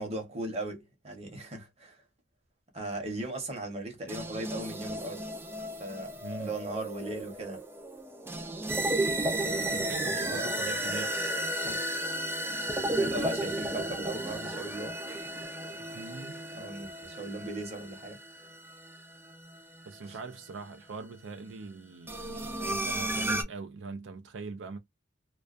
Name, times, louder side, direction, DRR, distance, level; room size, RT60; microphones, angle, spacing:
voice 1, 0.0-2.0 2.7-5.3 5.8-7.6 9.4-10.5 11.6-11.8 13.0-15.3 16.5-18.2 20.1-20.2, right 1 dB, 35° right, 0.9 m, -38 dB
sound 1, 4.1-20.2 22.1-23.4, right 1 dB, 15° right, 0.4 m, -34 dB
voice 2, 6.2-6.6 9.7-11.3 15.9-16.4 19.9-24.8, right 3 dB, 80° right, 0.4 m, -42 dB
2.3 x 2.2 x 2.4 m
head